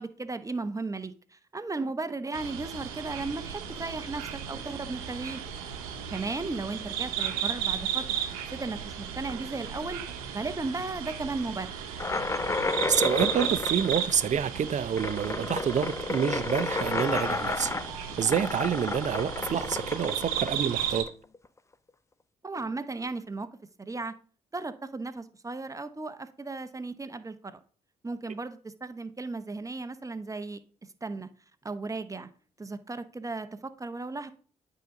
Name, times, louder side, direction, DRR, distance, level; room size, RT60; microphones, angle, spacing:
voice 1, 0.0-5.4 5.9-8.0 8.5-10.0 10.3-11.7 22.4-23.5 23.8-24.1 24.5-27.6 28.0-30.6 31.0-31.3 31.6-32.3 32.6-34.3, right 3 dB, 20° right, 0.9 m, -35 dB
sound 1, 2.3-21.0, right 9 dB, 85° right, 0.9 m, -35 dB
sound 2, 12.0-21.4, left 3 dB, 15° left, 0.5 m, -32 dB
voice 2, 12.9-17.7 18.2-21.1, right 8 dB, 40° right, 0.6 m, -28 dB
9.1 x 3.9 x 5.3 m
hypercardioid pair, 50°, 18 cm